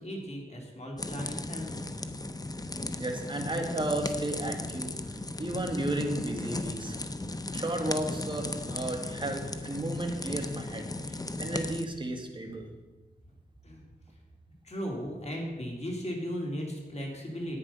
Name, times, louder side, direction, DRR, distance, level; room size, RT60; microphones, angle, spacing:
voice 1, 0.0-1.7 13.6-13.8 14.6-17.6, equal, 40° left, 0 dB, 2.8 m, -36 dB
sound 1, 1.0-11.8, left 2 dB, 20° left, 0.7 m, -36 dB
voice 2, 3.0-4.9 5.4-7.0 7.5-12.7, right 1 dB, 30° right, 2 dB, 1.9 m, -33 dB
10.0 x 9.0 x 5.5 m, 1.2 s
wide cardioid pair, 65°, 17 cm